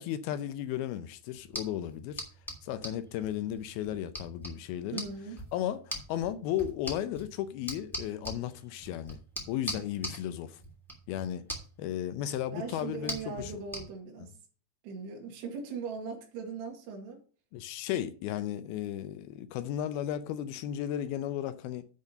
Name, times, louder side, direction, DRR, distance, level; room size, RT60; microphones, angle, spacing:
voice 1, 0.0-2.2 2.6-5.1 5.5-9.2 9.5-10.6 11.1-11.4 11.8-13.5 17.5-21.9, left 11 dB, 80° left, 2.3 m, -34 dB
sound 1, 1.3-13.8, equal, ahead, 2.0 m, -43 dB
voice 2, 4.9-5.4 12.5-14.4 14.8-17.2, right 5 dB, 85° right, 3.8 m, -39 dB
10.5 x 4.1 x 6.5 m
omnidirectional pair, 4.8 m